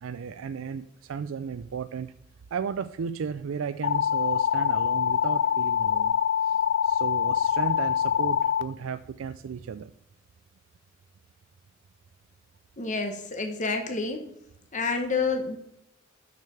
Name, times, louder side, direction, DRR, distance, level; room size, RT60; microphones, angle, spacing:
voice 1, 0.0-2.1 2.5-6.1 6.4-9.9, right 6 dB, 75° right, 11 dB, 0.4 m, -34 dB
sound 1, 3.8-8.6, left 9 dB, 60° left, 0.5 m, -24 dB
voice 2, 12.8-14.3 14.7-15.6, left 4 dB, 40° left, 4 dB, 1.0 m, -28 dB
6.7 x 6.5 x 6.8 m, 0.77 s
head